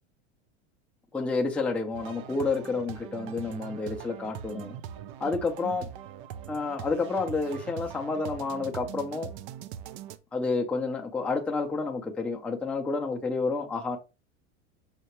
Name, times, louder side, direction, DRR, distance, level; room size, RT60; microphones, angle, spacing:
voice 1, 1.1-4.7 5.2-5.9 6.5-9.3 10.3-14.0, left 3 dB, 5° left, 0.5 m, -30 dB
sound 1, 1.9-10.2, right 10 dB, 55° right, 0.5 m, -42 dB
5.7 x 2.1 x 2.9 m
hypercardioid pair, 110°, 35 cm